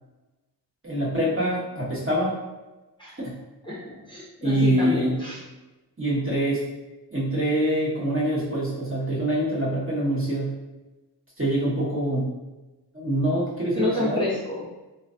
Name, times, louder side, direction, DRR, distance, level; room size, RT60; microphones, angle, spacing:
voice 1, 0.8-2.3 3.2-3.4 4.4-5.2 6.0-6.6 7.1-10.5 11.4-12.3 12.9-14.3, right 1 dB, 30° right, -8 dB, 1.3 m, -25 dB
voice 2, 3.6-5.4 13.7-14.6, left 2 dB, 10° left, -8 dB, 0.9 m, -29 dB
3.1 x 2.7 x 2.5 m, 1.1 s
wide cardioid pair, 60°, 43 cm